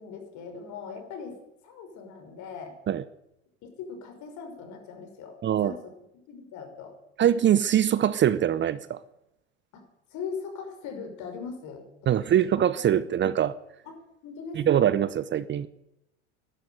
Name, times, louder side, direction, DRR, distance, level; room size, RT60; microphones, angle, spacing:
voice 1, 0.0-1.3 1.6-2.7 3.6-5.3 5.6-5.9 6.3-6.9 9.7-9.8 10.1-11.8 12.1-12.2 13.8-13.9 14.2-14.8, left 5 dB, 50° left, 5 dB, 5.8 m, -40 dB
voice 2, 5.4-5.7 7.2-9.0 12.1-13.5 14.6-15.7, right 10 dB, 30° right, 16 dB, 0.8 m, -23 dB
12.5 x 12.0 x 9.4 m, 0.84 s
hypercardioid pair, 80°, 36 cm